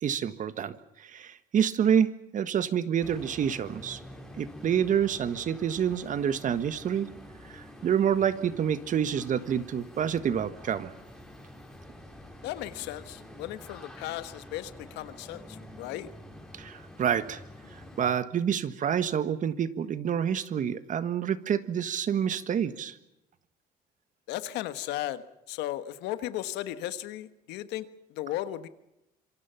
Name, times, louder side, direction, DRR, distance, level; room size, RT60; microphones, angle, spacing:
voice 1, 0.0-4.0 4.4-7.1 7.5-10.9 16.5-17.4 18.0-23.0, right 8 dB, 50° right, 13 dB, 1.5 m, -28 dB
sound 1, 3.0-18.2, left 1 dB, 5° left, 5.3 m, -48 dB
voice 2, 12.4-16.1 24.3-28.7, left 14 dB, 90° left, 12 dB, 1.5 m, -36 dB
26.5 x 24.0 x 5.8 m, 0.90 s
cardioid pair, 110°, 17 cm